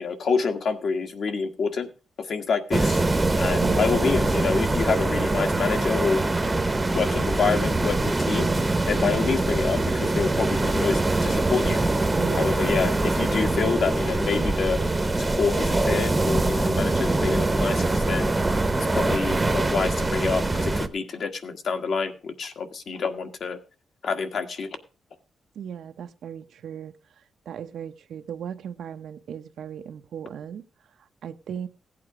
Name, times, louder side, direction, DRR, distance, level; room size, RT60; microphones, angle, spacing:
voice 1, 0.0-1.9 2.2-3.0 3.4-6.2 6.9-8.5 8.9-11.8 12.3-14.8 15.2-18.3 18.8-23.6 24.0-24.7, left 5 dB, 55° left, 1.5 m, -27 dB
sound 1, 2.7-20.9, right 2 dB, 15° right, 0.9 m, -23 dB
voice 2, 3.6-4.0 12.2-12.6 25.5-30.7 31.0-31.7, right 8 dB, 75° right, 0.8 m, -36 dB
16.0 x 8.6 x 4.9 m
wide cardioid pair, 160°, 0 cm